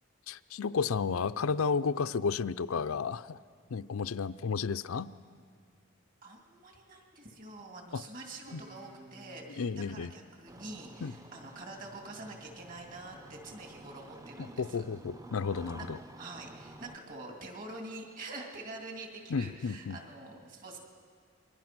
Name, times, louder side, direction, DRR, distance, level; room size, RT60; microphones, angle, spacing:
voice 1, 0.3-3.4 3.7-5.1 7.9-8.0 8.5-8.6 9.6-10.1 11.0-11.1 14.6-16.0 19.3-20.0, left 5 dB, 90° left, 13 dB, 0.5 m, -32 dB
voice 2, 6.2-14.9 15.8-15.9 16.1-20.8, right 2 dB, 40° right, 2 dB, 2.8 m, -46 dB
Guitar, 8.5-11.7, equal, 85° right, 5.9 m, -56 dB
Engine starting, 10.5-17.0, right 1 dB, 15° right, 0.7 m, -51 dB
27.5 x 22.5 x 6.1 m, 2.1 s
head